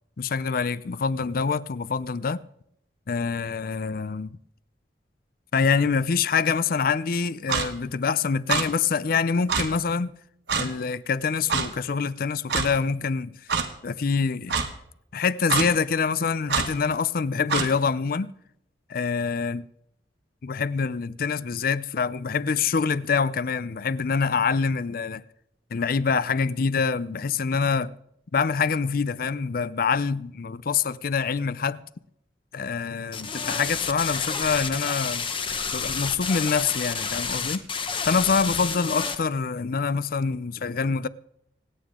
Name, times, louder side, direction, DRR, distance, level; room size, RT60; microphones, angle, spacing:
voice 1, 0.2-2.4 3.1-4.4 5.5-10.1 10.5-13.4 13.8-14.6 15.1-18.3 18.9-19.7 20.4-25.2 25.7-27.9 28.3-31.8 32.5-35.2 35.7-37.7 38.1-41.1, left 5 dB, 55° left, 0.5 m, -25 dB
Clock, 7.5-7.7 8.5-8.6 9.5-9.6 10.5-10.7 11.5-11.7 12.5-12.7 13.5-13.6 14.5-14.7 15.5-15.7 16.5-16.7 17.5-17.7, right 5 dB, 70° right, 1.5 m, -24 dB
sound 1, 33.1-39.2, left 5 dB, 30° left, 1.0 m, -30 dB
25.5 x 9.2 x 3.7 m
head